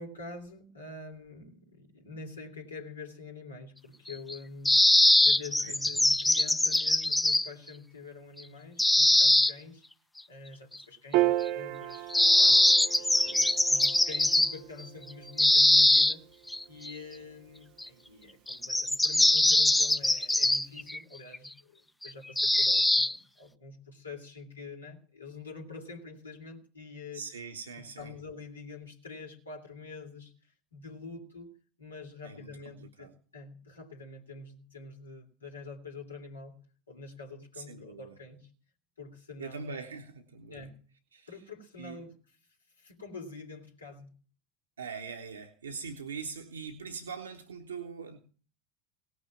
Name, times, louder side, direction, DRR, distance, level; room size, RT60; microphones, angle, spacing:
voice 1, 0.0-9.8 10.3-16.2 16.7-27.2 27.8-31.5 31.8-36.6 36.9-38.5 39.0-39.9 40.5-40.8 41.3-42.1 42.8-44.1, left 4 dB, 85° left, 1 dB, 2.6 m, -46 dB
sound 1, 4.1-4.3 4.6-7.5 8.8-9.5 12.1-14.6 15.4-16.1 16.5-16.9 17.8-17.9 18.5-21.0 21.3-21.4 22.0-22.1 22.4-23.2, left 1 dB, 5° left, 0.5 m, -22 dB
Piano, 11.1-17.8, right 15 dB, 55° right, 0.8 m, -35 dB
voice 2, 27.1-28.1 32.2-33.1 37.5-38.2 39.4-40.7 41.1-41.4 41.8-42.0 44.8-48.2, right 5 dB, 80° right, 5 dB, 1.1 m, -42 dB
18.0 x 6.2 x 7.1 m, 0.42 s
figure-of-eight pair, 75°, 0 cm